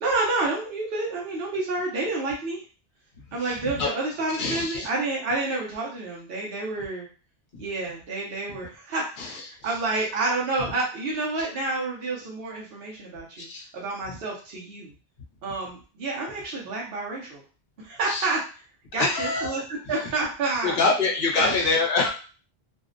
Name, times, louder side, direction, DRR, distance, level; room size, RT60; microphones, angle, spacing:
voice 1, 0.0-2.6 3.3-7.1 7.6-13.5 13.7-14.9 15.4-17.4 17.8-18.4 18.9-20.8 21.3-21.5, right 3 dB, 70° right, -4 dB, 0.8 m, -29 dB
voice 2, 3.4-3.9 4.4-4.9 9.2-9.4 13.4-13.6 14.1-14.2 18.0-18.3 19.0-19.6 20.6-22.1, left 3 dB, 60° left, -1 dB, 0.8 m, -25 dB
2.5 x 2.0 x 2.5 m, 0.37 s
omnidirectional pair, 1.0 m